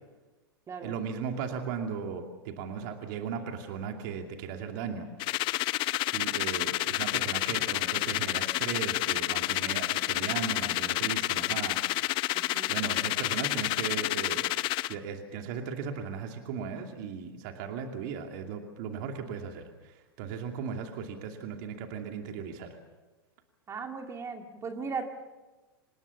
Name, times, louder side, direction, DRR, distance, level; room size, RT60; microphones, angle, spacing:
voice 1, 0.8-5.1 6.1-11.8 12.7-14.4 14.9-22.8, right 6 dB, 55° right, 4 dB, 2.6 m, -37 dB
sound 1, 5.2-14.9, left 19 dB, 40° left, 0.7 m, -29 dB
voice 2, 12.3-12.7 23.7-25.1, right 5 dB, 25° right, 5 dB, 2.1 m, -37 dB
26.5 x 19.5 x 7.2 m, 1.2 s
hypercardioid pair, 105°, 12 cm